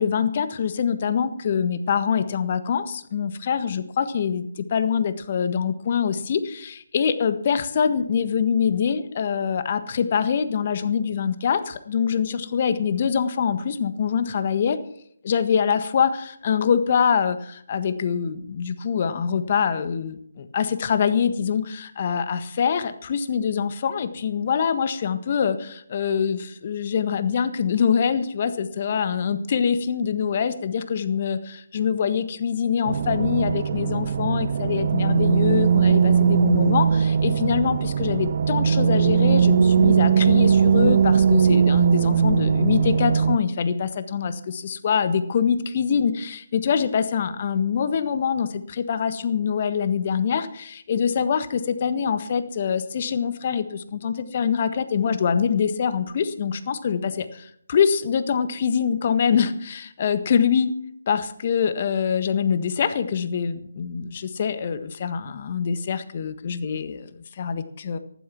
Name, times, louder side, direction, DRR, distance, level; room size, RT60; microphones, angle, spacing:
voice 1, 0.0-14.8 15.2-60.7 61.1-68.0, left 7 dB, 40° left, 11 dB, 1.5 m, -24 dB
sound 1, 32.9-43.4, right 7 dB, 45° right, 0.4 m, -19 dB
14.5 x 11.5 x 5.9 m, 0.69 s
figure-of-eight pair, 150°, 0 cm